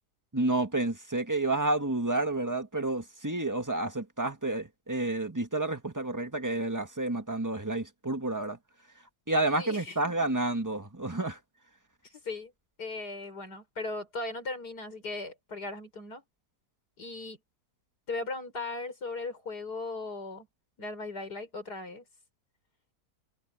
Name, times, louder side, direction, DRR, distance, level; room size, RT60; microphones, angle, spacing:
voice 1, 0.3-8.6 9.3-11.4, right 2 dB, 10° right, 1.6 m, -30 dB
voice 2, 9.6-10.1 12.1-12.5 12.8-16.2 17.0-17.4 18.1-20.5 20.8-22.0, left 3 dB, 75° left, 5.8 m, -38 dB
omnidirectional pair, 1.7 m